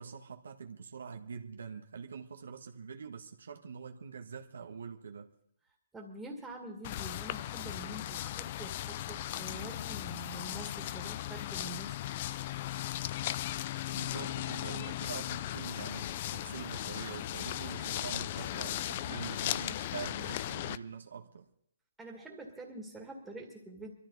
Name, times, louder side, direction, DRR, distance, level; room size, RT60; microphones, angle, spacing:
voice 1, 0.0-5.3 13.9-21.5, right 6 dB, 75° right, 1.4 m, -44 dB
voice 2, 5.9-12.0 22.0-23.9, right 2 dB, 10° right, 2.1 m, -46 dB
sound 1, 6.8-20.8, left 13 dB, 40° left, 0.5 m, -37 dB
22.0 x 13.5 x 4.1 m
hypercardioid pair, 140°, 0 cm